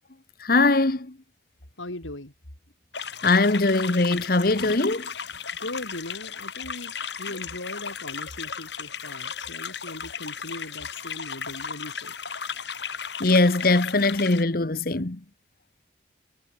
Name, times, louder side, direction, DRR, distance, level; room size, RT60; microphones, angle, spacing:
voice 1, 0.4-1.2 3.2-5.1 13.2-15.2, left 2 dB, 50° left, 1.1 m, -21 dB
voice 2, 1.8-2.3 5.6-12.1, left 1 dB, 85° left, 4.6 m, -39 dB
sound 1, 2.9-14.4, left 6 dB, 65° left, 6.0 m, -35 dB
head